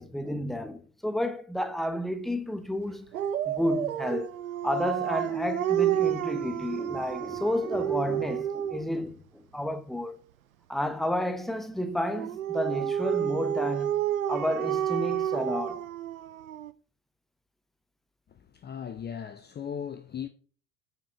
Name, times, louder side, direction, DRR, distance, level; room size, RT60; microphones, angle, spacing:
voice 1, 0.0-3.1 3.5-4.3 4.6-10.2 10.7-14.0 14.3-15.9, left 1 dB, ahead, 0.9 m, -31 dB
Dog, 3.1-9.0 12.1-16.7, right 11 dB, 85° right, 0.5 m, -30 dB
voice 2, 18.3-20.3, left 8 dB, 25° left, 0.6 m, -38 dB
9.1 x 5.0 x 4.8 m
figure-of-eight pair, 65°, 41 cm